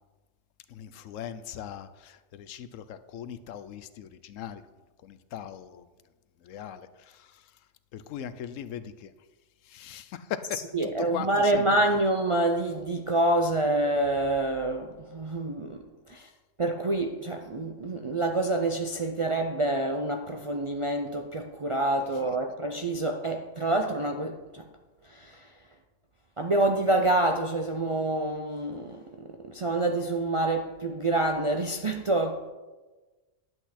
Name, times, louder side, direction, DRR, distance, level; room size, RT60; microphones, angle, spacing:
voice 1, 0.7-4.6 5.0-5.9 6.4-7.6 7.9-9.1 9.6-11.7 16.1-16.3 22.0-22.2, left 9 dB, 90° left, 1.0 m, -40 dB
voice 2, 10.5-16.3 16.6-24.7 25.0-25.7 26.4-32.5, right 2 dB, 50° right, 0.3 m, -27 dB
11.0 x 8.0 x 4.2 m
omnidirectional pair, 1.3 m